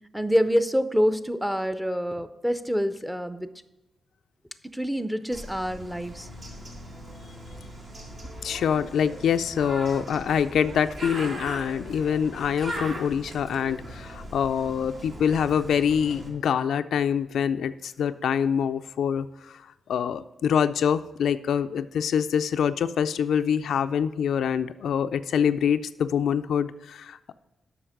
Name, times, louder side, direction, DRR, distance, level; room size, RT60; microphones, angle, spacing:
voice 1, 0.1-3.5 4.6-6.3, equal, 5° right, 11 dB, 0.6 m, -26 dB
Bird, 5.3-16.3, right 1 dB, 60° right, 2.3 m, -40 dB
voice 2, 8.4-19.6 19.9-27.3, left 8 dB, 85° left, 10 dB, 0.3 m, -25 dB
7.8 x 5.7 x 6.4 m, 1.0 s
cardioid pair, 80°, 0 cm